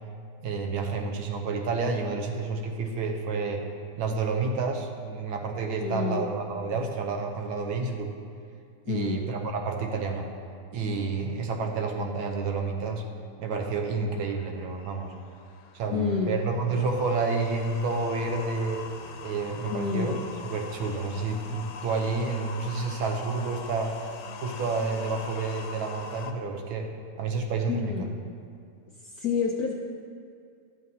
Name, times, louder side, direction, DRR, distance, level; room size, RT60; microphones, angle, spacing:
voice 1, 0.4-3.6 4.0-8.1 8.9-10.3 10.7-13.0 13.4-15.1 15.7-18.8 19.2-20.2 20.5-23.9 24.4-26.9 27.2-28.1, right 4 dB, 75° right, 2 dB, 1.6 m, -29 dB
voice 2, 5.8-6.3 8.9-9.2 15.9-16.4 19.7-20.3 27.7-28.1 29.0-29.7, left 6 dB, 70° left, 0 dB, 0.9 m, -29 dB
sound 1, 13.5-26.3, left 6 dB, 90° left, 1.5 m, -43 dB
12.0 x 7.4 x 2.8 m, 2.3 s
omnidirectional pair, 2.2 m